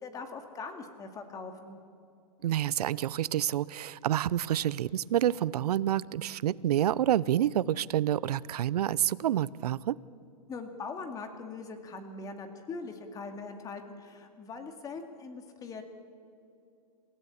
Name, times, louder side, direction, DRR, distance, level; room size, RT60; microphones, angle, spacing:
voice 1, 0.0-1.8 10.5-15.8, left 4 dB, 15° left, 6 dB, 2.2 m, -41 dB
voice 2, 2.4-10.0, right 11 dB, 70° right, 21 dB, 0.7 m, -28 dB
27.5 x 16.5 x 8.6 m, 2.5 s
hypercardioid pair, 145°, 20 cm